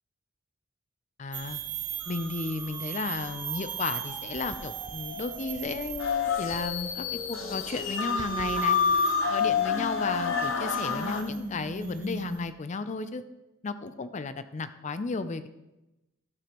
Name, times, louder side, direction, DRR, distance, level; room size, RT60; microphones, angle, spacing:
voice 1, 1.2-1.6 2.1-8.8 9.3-13.2 13.6-15.5, left 4 dB, 35° left, 12 dB, 0.4 m, -34 dB
sound 1, 1.3-12.5, right 10 dB, 40° right, 0.5 m, -40 dB
sound 2, 2.0-12.3, equal, 5° left, 1.3 m, -41 dB
sound 3, 6.0-11.2, left 5 dB, 65° left, 0.9 m, -28 dB
13.0 x 6.9 x 3.0 m, 0.98 s
head